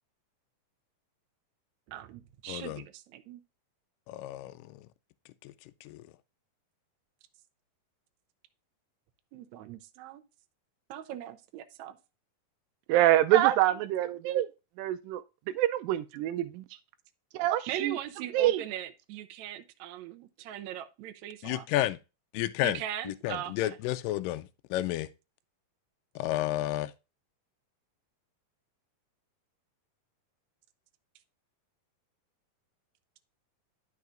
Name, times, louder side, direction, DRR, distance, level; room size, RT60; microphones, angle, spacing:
voice 1, 1.9-3.4 9.3-10.2 10.9-11.9 17.7-21.6 22.6-23.5, right 11 dB, 75° right, 1.7 m, -39 dB
voice 2, 2.5-2.8 4.1-4.8 5.4-5.5 5.8-6.0 21.4-22.0 22.3-25.1 26.2-26.9, left 15 dB, 85° left, 2.2 m, -32 dB
voice 3, 12.9-14.5 14.8-15.2 15.6-16.6 17.3-18.0 18.3-18.6, right 14 dB, 90° right, 2.3 m, -25 dB
11.0 x 5.6 x 2.5 m
omnidirectional pair, 3.9 m